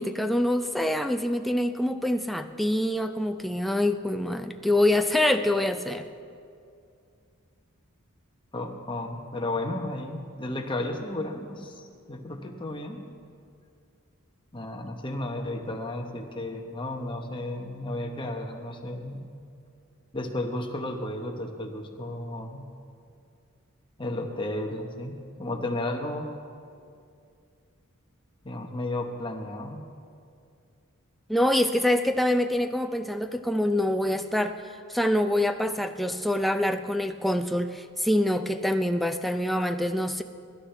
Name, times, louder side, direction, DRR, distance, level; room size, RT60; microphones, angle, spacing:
voice 1, 0.0-6.1 31.3-34.6 34.9-40.2, left 1 dB, ahead, 6 dB, 0.4 m, -25 dB
voice 2, 8.5-13.1 14.5-19.3 20.1-22.6 24.0-26.3 28.4-29.8, left 1 dB, 25° left, 2 dB, 1.1 m, -33 dB
22.5 x 11.5 x 3.4 m, 2.4 s
head